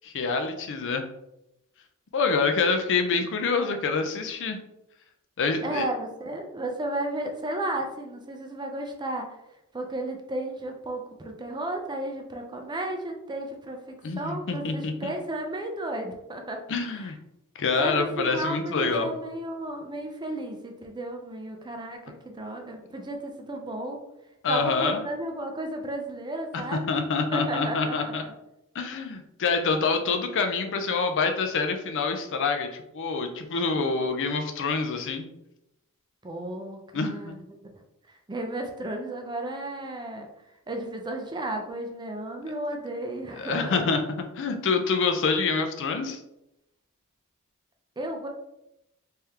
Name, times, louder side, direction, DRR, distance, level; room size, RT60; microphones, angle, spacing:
voice 1, 0.0-1.1 2.1-4.6 5.4-5.9 14.0-15.1 16.7-17.2 17.6-19.1 24.4-25.0 26.7-28.2 28.7-35.3 36.9-37.4 43.4-44.0 44.4-46.2, left 4 dB, 60° left, 6 dB, 0.5 m, -26 dB
voice 2, 5.6-9.4 9.7-16.6 17.8-24.0 24.5-27.0 27.3-28.1 36.2-37.4 37.6-37.7 38.1-40.3 40.7-43.9 48.0-48.3, right 1 dB, 20° right, 3 dB, 0.5 m, -33 dB
3.5 x 3.3 x 2.8 m, 0.87 s
head